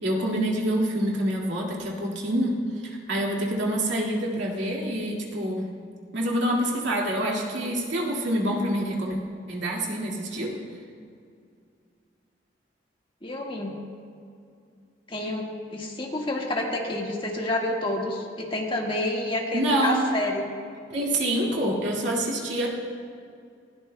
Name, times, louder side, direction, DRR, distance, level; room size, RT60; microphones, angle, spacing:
voice 1, 0.0-2.6 2.8-5.7 6.1-9.2 9.5-10.6 19.5-20.1 20.9-22.7, right 1 dB, 80° right, -2 dB, 2.1 m, -26 dB
voice 2, 13.2-13.7 15.1-15.4 15.7-20.5, left 1 dB, 30° left, 0 dB, 1.6 m, -29 dB
20.0 x 16.0 x 2.2 m, 2.3 s
head